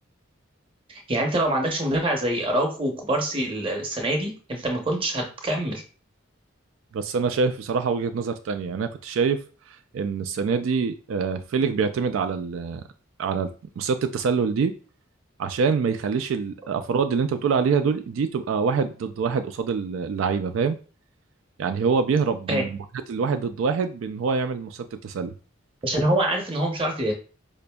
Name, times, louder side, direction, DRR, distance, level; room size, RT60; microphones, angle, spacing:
voice 1, 0.9-5.8 22.5-22.7 25.8-27.1, right 1 dB, 25° right, 2 dB, 0.7 m, -25 dB
voice 2, 6.9-9.4 9.9-12.8 13.2-13.5 13.8-14.7 15.4-20.8 21.6-22.8 23.1-25.3, right 5 dB, 80° right, 9 dB, 0.3 m, -25 dB
4.9 x 2.5 x 2.2 m, 0.37 s
head